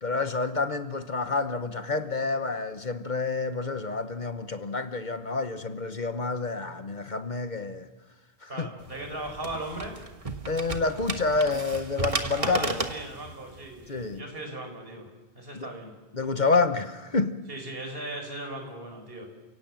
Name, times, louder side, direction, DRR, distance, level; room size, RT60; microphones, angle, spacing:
voice 1, 0.0-7.9 8.4-8.7 10.5-12.9 13.9-14.2 15.5-15.7 16.1-17.4, left 3 dB, 50° left, 1.1 m, -28 dB
voice 2, 8.5-10.0 12.4-15.1 15.3-15.9 17.5-19.3, right 1 dB, 65° right, 4.9 m, -38 dB
sound 1, 8.8-14.2, right 3 dB, 35° right, 1.4 m, -34 dB
29.5 x 17.5 x 7.6 m
omnidirectional pair, 1.1 m